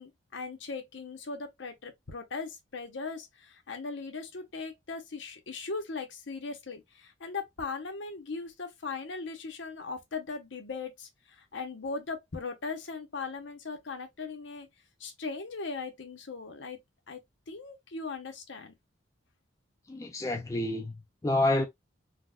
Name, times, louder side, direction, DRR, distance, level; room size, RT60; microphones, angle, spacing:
voice 1, 0.0-14.7 15.0-16.8 17.1-17.2 17.5-18.7, left 4 dB, 65° left, 0.8 m, -39 dB
voice 2, 19.9-21.7, left 2 dB, 15° left, 0.3 m, -29 dB
3.9 x 2.1 x 2.3 m
head